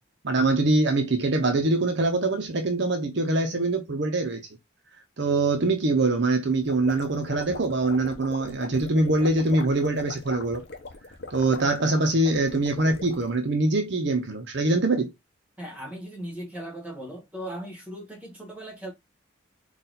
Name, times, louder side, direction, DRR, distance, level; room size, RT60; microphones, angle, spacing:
voice 1, 0.2-4.5 5.2-10.6 11.3-15.1, right 2 dB, 55° right, 0.7 m, -24 dB
sound 1, 6.5-13.3, left 3 dB, 50° left, 0.8 m, -40 dB
voice 2, 15.6-18.9, right 1 dB, 5° right, 1.3 m, -38 dB
4.2 x 2.4 x 3.9 m
head